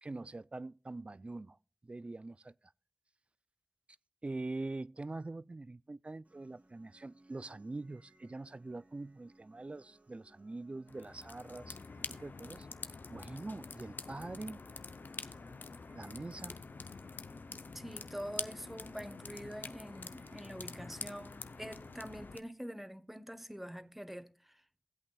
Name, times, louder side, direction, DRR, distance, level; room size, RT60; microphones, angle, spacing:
voice 1, 0.0-1.6 1.8-2.5 4.2-11.8 12.1-14.6 15.9-16.6, right 2 dB, 40° right, 0.3 m, -44 dB
sound 1, 6.2-22.3, right 1 dB, 60° right, 2.7 m, -63 dB
sound 2, 10.9-22.4, left 4 dB, 85° left, 0.6 m, -46 dB
voice 2, 17.7-24.6, equal, 5° right, 0.9 m, -45 dB
16.0 x 8.4 x 2.3 m
wide cardioid pair, 55°, 3 cm